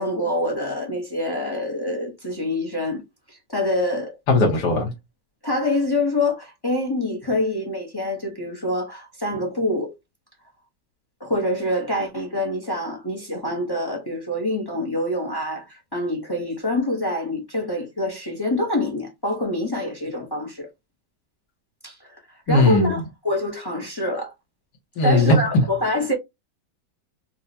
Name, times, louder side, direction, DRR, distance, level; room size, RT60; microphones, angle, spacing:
voice 1, 0.0-3.0 3.3-4.1 5.4-9.9 11.2-20.7 21.8-22.0 22.5-24.3 25.0-26.1, left 1 dB, 30° left, 0.4 m, -26 dB
voice 2, 4.3-4.9 22.5-22.9 25.0-25.6, left 2 dB, 75° left, 1.5 m, -18 dB
4.5 x 2.0 x 2.6 m
omnidirectional pair, 1.8 m